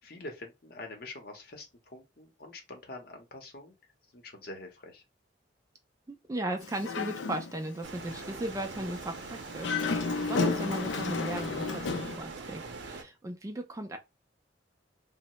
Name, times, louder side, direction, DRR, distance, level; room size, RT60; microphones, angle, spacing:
voice 1, 0.1-3.7 4.1-5.0, left 2 dB, 55° left, 0.7 m, -45 dB
voice 2, 6.1-14.0, right 1 dB, 15° right, 0.3 m, -37 dB
Dog, 6.6-7.7 8.1-8.3 9.5-12.2, left 4 dB, 85° left, 0.4 m, -32 dB
sound 1, 7.8-13.0, right 4 dB, 75° right, 0.6 m, -43 dB
3.1 x 2.0 x 2.9 m
head